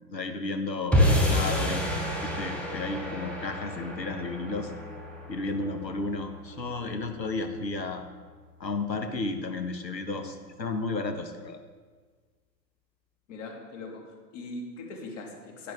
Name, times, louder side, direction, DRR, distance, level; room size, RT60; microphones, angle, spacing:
voice 1, 0.1-1.9 2.2-4.7 5.3-8.0 8.6-11.6, left 3 dB, 85° left, 7 dB, 1.4 m, -33 dB
sound 1, 0.9-7.3, equal, ahead, 1.8 m, -29 dB
voice 2, 13.3-15.7, left 2 dB, 50° left, 0 dB, 2.7 m, -41 dB
11.5 x 10.5 x 3.5 m, 1.4 s
figure-of-eight pair, 110°, 49 cm